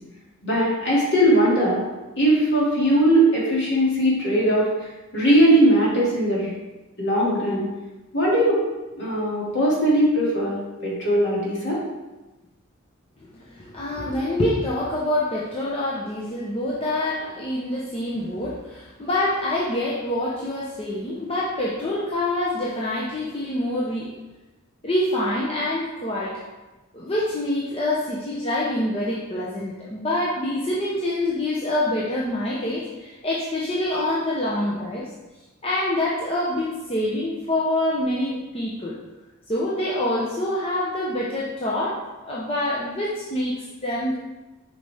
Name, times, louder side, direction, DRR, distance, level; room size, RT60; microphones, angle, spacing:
voice 1, 0.4-1.8 2.2-4.7 5.1-6.5 7.0-7.7 8.1-8.6 9.0-10.6 10.8-11.8, right 1 dB, 55° left, -6 dB, 2.4 m, -19 dB
voice 2, 13.5-24.1 24.8-26.5 26.9-35.1 35.6-39.0 39.5-43.5 43.8-44.1, left 1 dB, 25° left, -6 dB, 0.8 m, -26 dB
6.7 x 5.4 x 3.5 m, 1.1 s
head